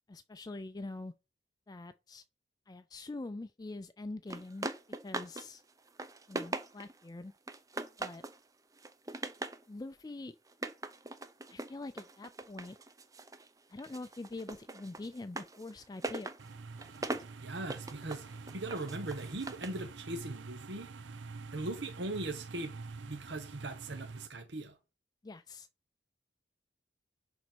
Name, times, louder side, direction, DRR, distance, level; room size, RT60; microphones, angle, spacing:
voice 1, 0.1-1.1 1.7-2.2 2.7-5.6 6.3-7.3 8.0-8.2 9.7-10.4 11.5-12.8 13.7-16.3 25.2-25.7, left 2 dB, 20° left, 0.4 m, -44 dB
sound 1, 4.3-5.5 5.8-7.0 7.5-8.4 8.8-9.6 10.5-13.5 13.8-19.8, right 2 dB, 20° right, 0.6 m, -41 dB
sound 2, 16.4-24.3, right 4 dB, 90° right, 0.6 m, -46 dB
voice 2, 17.4-18.3 18.5-20.9 21.5-22.7 23.0-24.7, right 2 dB, 70° right, 1.1 m, -39 dB
10.5 x 4.0 x 6.1 m
head